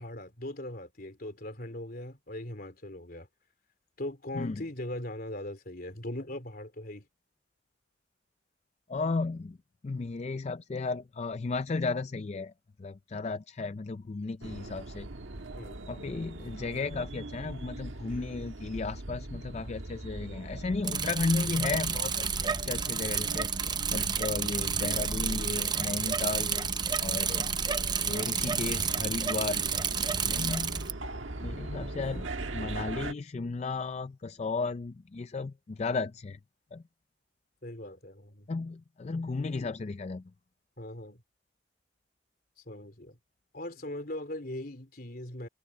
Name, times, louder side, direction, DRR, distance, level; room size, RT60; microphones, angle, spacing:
voice 1, 0.0-3.3 4.0-7.1 15.6-15.8 30.2-30.5 37.6-38.5 40.8-41.2 42.7-43.2 43.5-45.5, left 1 dB, 50° left, 3.5 m, -40 dB
voice 2, 8.9-9.6 9.8-12.5 12.8-15.1 15.9-26.7 27.0-27.5 28.0-29.6 30.3-30.9 31.4-36.4 36.7-36.8 38.5-40.2, left 3 dB, 35° left, 0.4 m, -34 dB
sound 1, 14.4-33.1, right 2 dB, 90° right, 1.4 m, -41 dB
Bicycle, 20.8-30.9, right 6 dB, 20° right, 0.6 m, -30 dB
head